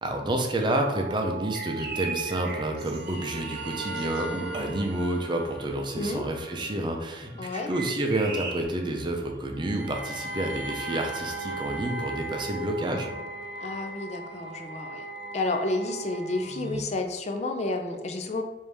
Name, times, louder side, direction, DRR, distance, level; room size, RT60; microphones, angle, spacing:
voice 1, 0.0-13.1, right 1 dB, 25° right, 3 dB, 0.5 m, -29 dB
sound 1, 0.8-16.8, right 2 dB, 80° right, 0.5 m, -38 dB
sound 2, 1.5-4.3 7.6-8.6, right 4 dB, 60° right, 0.9 m, -38 dB
voice 2, 7.4-7.7 13.6-15.0 15.3-18.4, left 2 dB, 40° left, 4 dB, 0.5 m, -30 dB
4.9 x 2.7 x 3.4 m, 1.0 s
head